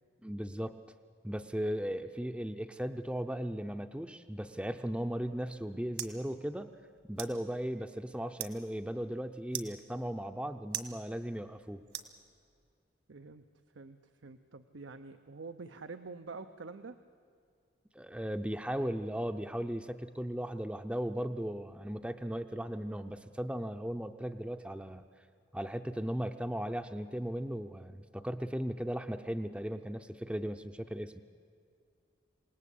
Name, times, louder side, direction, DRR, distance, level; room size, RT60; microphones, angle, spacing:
voice 1, 0.2-0.8 1.2-6.7 7.0-11.8 17.9-25.0 25.5-31.2, equal, 5° right, 7 dB, 0.6 m, -37 dB
sound 1, 5.2-12.7, right 10 dB, 70° right, 1.6 m, -47 dB
voice 2, 13.1-13.4 13.7-14.0 14.2-17.0, right 4 dB, 85° right, 8 dB, 0.8 m, -46 dB
27.5 x 18.5 x 8.4 m, 2.3 s
head